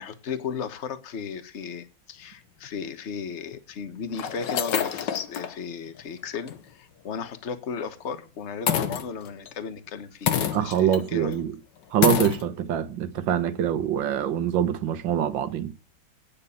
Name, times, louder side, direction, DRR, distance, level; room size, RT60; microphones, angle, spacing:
voice 1, 0.0-11.4, left 6 dB, 40° left, 1.3 m, -35 dB
sound 1, 2.6-2.7 3.5-3.6 4.1-5.5 6.0-6.1 6.5-6.6 8.7-9.5 10.3-11.0 11.3-11.4 12.0-12.4, left 9 dB, 70° left, 1.7 m, -26 dB
voice 2, 10.5-11.5 11.9-15.7, right 10 dB, 75° right, 1.7 m, -24 dB
9.7 x 6.7 x 8.5 m
omnidirectional pair, 2.1 m